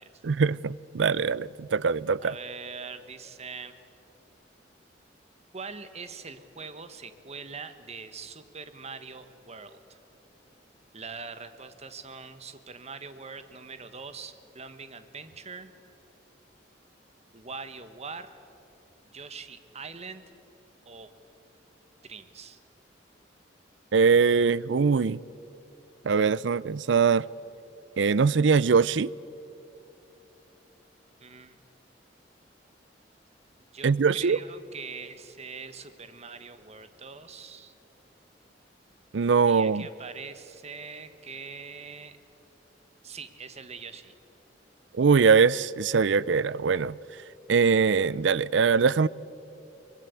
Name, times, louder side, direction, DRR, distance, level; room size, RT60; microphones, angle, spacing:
voice 1, 0.2-2.3 23.9-25.2 26.0-27.2 28.0-29.1 33.8-34.4 39.1-39.8 45.0-47.0 47.5-49.1, right 5 dB, 75° right, 0.5 m, -22 dB
voice 2, 2.2-3.8 5.5-10.0 10.9-15.7 17.3-18.4 19.1-20.2 20.8-21.1 22.0-22.6 31.2-31.6 33.7-37.7 39.5-42.2 43.0-44.1, right 5 dB, 35° right, 1.3 m, -43 dB
23.5 x 21.0 x 8.3 m
head